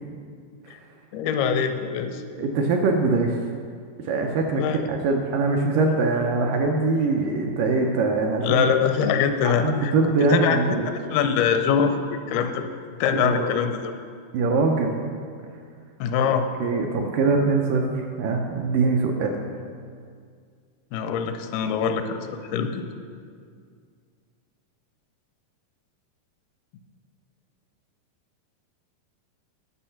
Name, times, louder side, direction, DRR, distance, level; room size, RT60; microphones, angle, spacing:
voice 1, 1.1-2.2 4.5-4.8 8.4-9.9 10.2-10.6 10.9-12.6 13.0-13.9 16.0-16.5 20.9-22.8, left 7 dB, 85° left, 7 dB, 2.6 m, -23 dB
voice 2, 2.3-3.4 4.1-4.6 4.9-8.6 9.4-10.9 13.1-13.5 14.3-15.0 16.2-16.3 16.6-19.3, right 3 dB, 80° right, 1 dB, 2.0 m, -23 dB
9.8 x 6.2 x 5.7 m, 2.1 s
omnidirectional pair, 4.3 m